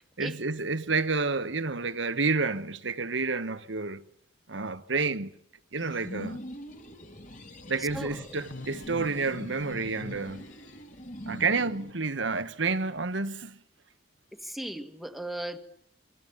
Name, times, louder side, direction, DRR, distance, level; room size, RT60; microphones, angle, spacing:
voice 1, 0.2-4.0 4.5-5.3 5.7-6.4 7.7-10.5 11.3-13.6, right 4 dB, 70° right, 1.4 m, -29 dB
sound 1, 5.8-11.9, equal, 40° left, 3.5 m, -43 dB
voice 2, 7.8-8.2 14.3-15.6, right 1 dB, ahead, 1.9 m, -37 dB
sound 2, 8.1-10.8, left 2 dB, 75° left, 1.9 m, -45 dB
27.5 x 25.5 x 7.2 m
head